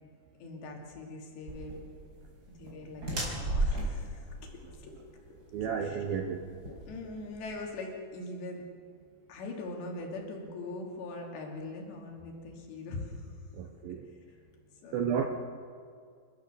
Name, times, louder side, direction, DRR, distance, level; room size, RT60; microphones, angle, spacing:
voice 1, 0.4-1.8 2.6-4.5 4.8-5.0 5.8-6.0 6.9-8.6 9.3-13.1 14.8-15.1, left 2 dB, 65° left, 1 dB, 4.9 m, -41 dB
sound 1, 1.5-7.6, right 1 dB, 20° right, 5.1 m, -36 dB
voice 2, 5.5-6.5 13.5-14.1 14.9-15.3, right 7 dB, 75° right, 4 dB, 2.3 m, -32 dB
29.0 x 13.0 x 7.0 m, 2.1 s
omnidirectional pair, 5.4 m